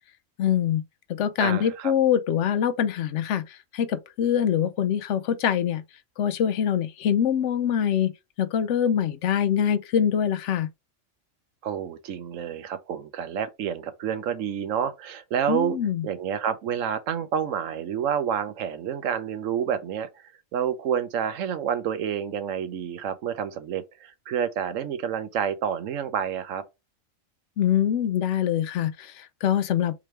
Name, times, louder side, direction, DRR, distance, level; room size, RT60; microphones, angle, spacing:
voice 1, 0.4-0.8 1.1-5.8 6.2-8.1 8.4-10.7 15.5-16.1 27.6-29.9, left 9 dB, 70° left, 0.9 m, -24 dB
voice 2, 1.4-1.9 11.6-15.8 16.0-20.1 20.5-26.6, right 8 dB, 90° right, 1.1 m, -29 dB
3.7 x 3.3 x 4.4 m
omnidirectional pair, 1.3 m